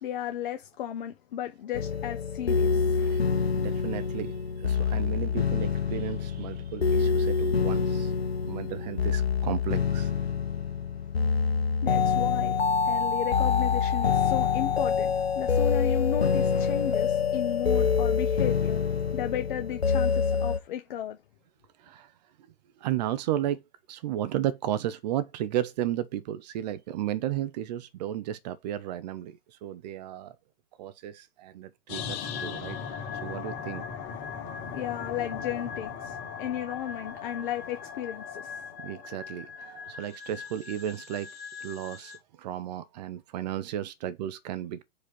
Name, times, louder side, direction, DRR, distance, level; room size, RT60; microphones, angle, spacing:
voice 1, 0.0-3.4 11.8-12.6 12.8-18.8 19.1-21.2 34.7-38.6, left 11 dB, 55° left, 1.0 m, -34 dB
sound 1, 1.7-20.6, left 6 dB, 85° left, 0.8 m, -26 dB
voice 2, 3.5-8.1 8.5-10.1 19.9-20.1 20.5-20.6 21.8-22.1 22.8-23.6 23.9-30.4 30.8-32.8 33.1-33.9 38.8-41.3 41.6-44.8, right 12 dB, 45° right, 0.8 m, -34 dB
sound 2, 31.9-42.2, left 7 dB, 40° left, 2.3 m, -39 dB
5.0 x 4.3 x 5.3 m
figure-of-eight pair, 105°, 30 cm